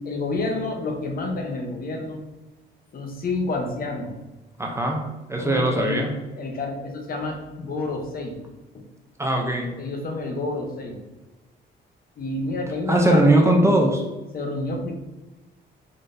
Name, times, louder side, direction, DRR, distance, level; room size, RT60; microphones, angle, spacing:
voice 1, 0.0-2.2 2.9-4.1 5.4-6.0 6.4-8.4 8.7-8.9 9.8-11.0 12.2-13.7 14.3-14.9, left 2 dB, 50° left, 2 dB, 0.8 m, -29 dB
voice 2, 4.6-6.1 9.2-9.7 12.9-14.0, right 1 dB, 15° right, 1 dB, 0.5 m, -20 dB
3.9 x 3.1 x 2.6 m, 1.1 s
cardioid pair, 90°, 20 cm